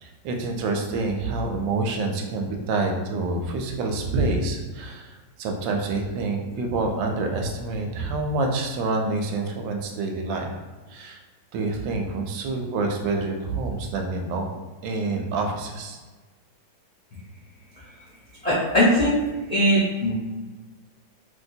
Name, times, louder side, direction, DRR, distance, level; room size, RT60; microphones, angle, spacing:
voice 1, 0.0-10.5 10.9-11.2 11.5-14.5 14.8-16.0, right 3 dB, 90° right, 3 dB, 1.3 m, -27 dB
voice 2, 18.4-19.2 19.5-20.1, equal, 70° left, -10 dB, 0.3 m, -20 dB
3.1 x 2.8 x 2.6 m, 1.3 s
omnidirectional pair, 1.9 m